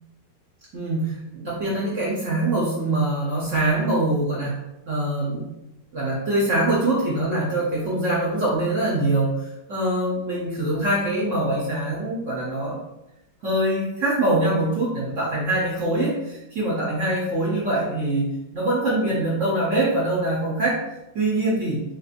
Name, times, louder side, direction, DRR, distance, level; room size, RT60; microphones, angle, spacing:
voice 1, 0.7-4.6 4.9-5.5 5.9-12.8 13.4-20.8 21.1-21.8, right 1 dB, 70° right, -5 dB, 0.7 m, -24 dB
3.5 x 2.8 x 2.4 m, 0.90 s
omnidirectional pair, 2.0 m